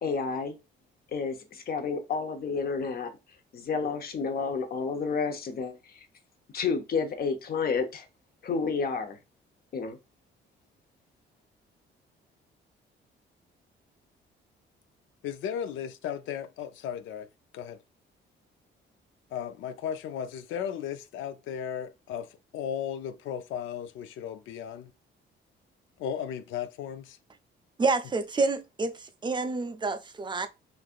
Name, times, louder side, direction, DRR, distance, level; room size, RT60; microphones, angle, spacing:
voice 1, 0.0-0.5 1.1-3.1 3.5-6.0 6.5-8.1 8.4-9.2 9.7-10.0, left 5 dB, 50° left, 0.7 m, -30 dB
voice 2, 15.2-17.3 17.5-17.8 19.3-24.9 26.0-27.2, left 8 dB, 80° left, 0.4 m, -35 dB
voice 3, 27.8-30.5, right 3 dB, 25° right, 0.4 m, -28 dB
3.2 x 2.5 x 2.4 m
cardioid pair, 90°, 20 cm